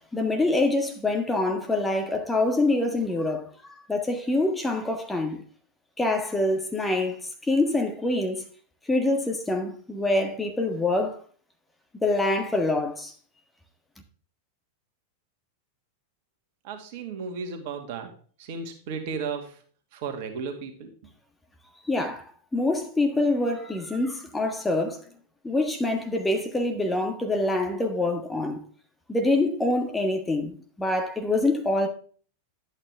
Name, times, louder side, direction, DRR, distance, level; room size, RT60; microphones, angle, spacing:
voice 1, 0.1-3.5 3.9-5.4 6.0-8.4 8.9-11.2 12.0-13.1 21.8-25.0 25.4-28.6 29.1-31.9, left 2 dB, 10° left, 1.5 m, -25 dB
voice 2, 16.6-18.1 18.4-19.6 19.9-20.9, right 5 dB, 50° right, 2.0 m, -34 dB
11.5 x 8.9 x 3.5 m
figure-of-eight pair, 90°, 0 cm